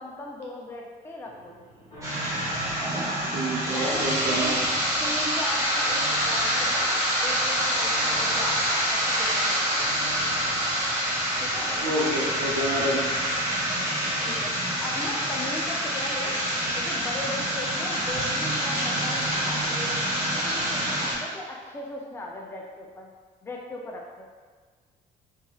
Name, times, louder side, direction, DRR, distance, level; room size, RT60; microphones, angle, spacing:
voice 1, 0.0-1.6 2.8-3.3 3.7-4.6 5.0-9.8 11.4-11.7 14.2-14.5 14.8-16.4 16.7-20.0 20.3-23.1 23.4-24.2, left 1 dB, 15° left, -1 dB, 0.4 m, -38 dB
sound 1, 1.2-2.8 3.2-4.8 5.2-6.8 7.1-8.7 9.1-10.7 11.1-12.6 13.1-13.2 13.4-13.5 13.7-14.6 14.9-15.0, equal, 35° left, 1.1 m, -44 dB
sound 2, 2.0-21.1, equal, 20° right, 0.9 m, -26 dB
voice 2, 3.3-4.5 11.8-13.0, right 1 dB, 85° right, -4 dB, 0.8 m, -28 dB
2.8 x 2.7 x 2.3 m, 1.5 s
cardioid pair, 110°, 17 cm